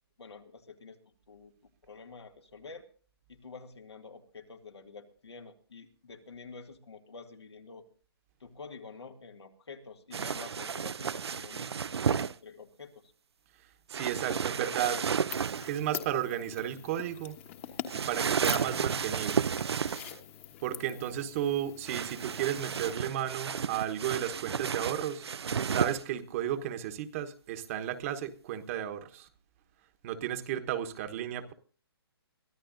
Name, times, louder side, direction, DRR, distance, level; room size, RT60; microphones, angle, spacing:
voice 1, 0.2-1.0 1.3-1.5 1.8-2.9 3.3-7.9 8.4-13.1 20.8-21.3, left 4 dB, 85° left, 5 dB, 2.2 m, -49 dB
sound 1, 10.1-12.3 13.9-15.8 17.9-20.2 21.8-26.0, right 6 dB, 80° right, 0.6 m, -32 dB
voice 2, 13.9-15.0 15.6-17.4 17.9-19.5 20.6-25.3 25.7-29.3 30.0-31.5, right 10 dB, 35° right, 8 dB, 1.2 m, -33 dB
sound 2, 15.3-22.9, left 12 dB, 30° left, 1.3 m, -44 dB
23.5 x 13.5 x 2.6 m, 0.42 s
hypercardioid pair, 150°, 13 cm